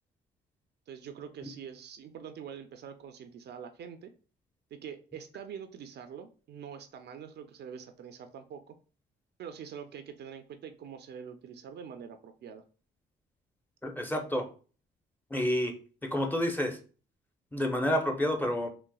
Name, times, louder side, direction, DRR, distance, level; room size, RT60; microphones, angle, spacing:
voice 1, 0.9-4.1 4.7-8.8 9.4-12.6, right 7 dB, 60° right, 8 dB, 0.4 m, -45 dB
voice 2, 13.8-14.5 15.3-15.7 16.0-16.8 17.5-18.7, left 1 dB, 10° left, 4 dB, 0.6 m, -29 dB
4.0 x 2.1 x 2.3 m, 0.38 s
cardioid pair, 90°, 20 cm